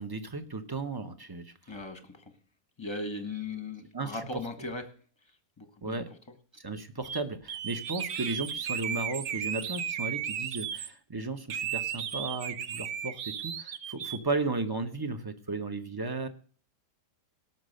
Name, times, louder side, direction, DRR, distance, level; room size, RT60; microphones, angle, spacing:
voice 1, 0.0-1.5 3.9-4.2 5.8-6.1 6.6-16.3, right 3 dB, 20° right, 0.6 m, -35 dB
voice 2, 1.7-2.2 2.8-4.9 5.6-6.0, left 2 dB, 15° left, 1.2 m, -38 dB
sound 1, 7.0-7.2 7.5-10.9 11.5-14.2, right 8 dB, 60° right, 0.8 m, -35 dB
18.0 x 6.0 x 6.6 m
omnidirectional pair, 1.8 m